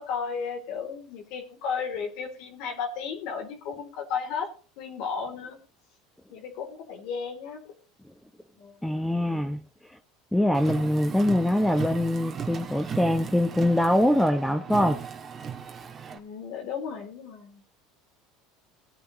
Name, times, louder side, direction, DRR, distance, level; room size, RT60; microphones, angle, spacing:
voice 1, 0.0-5.6 6.3-7.6 8.6-8.8 16.1-17.6, left 6 dB, 65° left, 2 dB, 3.3 m, -34 dB
voice 2, 8.8-9.6 10.3-15.0, left 1 dB, 5° left, 8 dB, 0.9 m, -23 dB
Car, 10.5-16.2, right 7 dB, 35° right, 1.9 m, -37 dB
17.0 x 8.9 x 3.1 m, 0.38 s
supercardioid pair, 110°, 0 cm